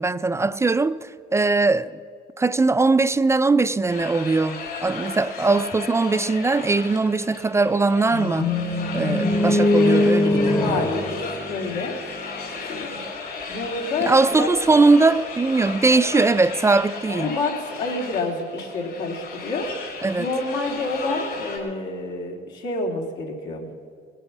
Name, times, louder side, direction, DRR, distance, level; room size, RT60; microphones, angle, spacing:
voice 1, 0.0-1.9 2.4-8.5 8.9-10.9 14.1-17.3 20.0-20.3, right 3 dB, 15° right, 0.4 m, -20 dB
sound 1, 3.9-21.6, left 4 dB, 70° left, 4.8 m, -35 dB
sound 2, 8.1-12.2, left 2 dB, 25° left, 0.9 m, -22 dB
voice 2, 10.5-12.0 12.7-13.0 13.5-14.5 17.2-23.7, left 3 dB, 90° left, 2.7 m, -28 dB
19.0 x 9.0 x 7.1 m
cardioid pair, 110°, 17 cm